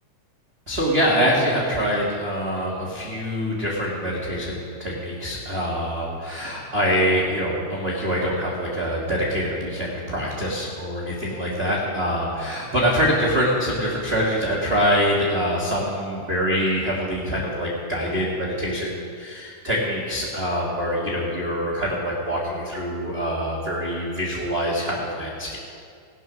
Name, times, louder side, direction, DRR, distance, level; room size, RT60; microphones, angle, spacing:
voice 1, 0.7-25.6, equal, 30° right, -4 dB, 1.1 m, -24 dB
18.5 x 6.8 x 6.0 m, 2.3 s
omnidirectional pair, 3.5 m